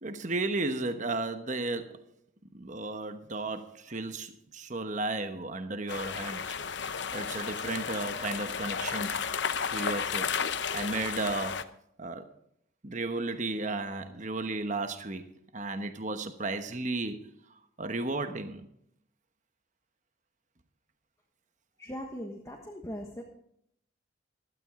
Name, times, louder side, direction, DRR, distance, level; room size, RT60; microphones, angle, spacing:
voice 1, 0.0-2.0 2.5-9.2 9.7-11.7 12.0-12.3 12.8-17.3 17.8-18.7, right 2 dB, 40° right, 1.1 m, -34 dB
sound 1, 5.9-11.6, left 6 dB, 60° left, 0.8 m, -33 dB
voice 2, 21.8-23.2, equal, 15° left, 1.4 m, -40 dB
16.0 x 13.0 x 3.7 m
head